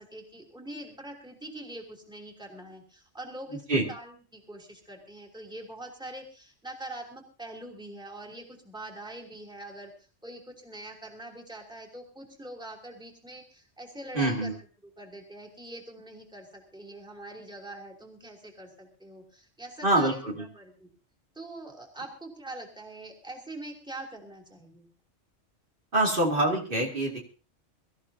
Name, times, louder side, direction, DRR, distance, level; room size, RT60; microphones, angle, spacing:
voice 1, 0.0-9.9 10.2-14.6 15.0-20.9 21.3-24.9, right 1 dB, 5° right, 0 dB, 2.9 m, -43 dB
voice 2, 14.1-14.5 19.8-20.5 25.9-27.2, right 1 dB, 50° right, -1 dB, 2.7 m, -25 dB
23.5 x 14.0 x 2.8 m, 0.35 s
omnidirectional pair, 1.2 m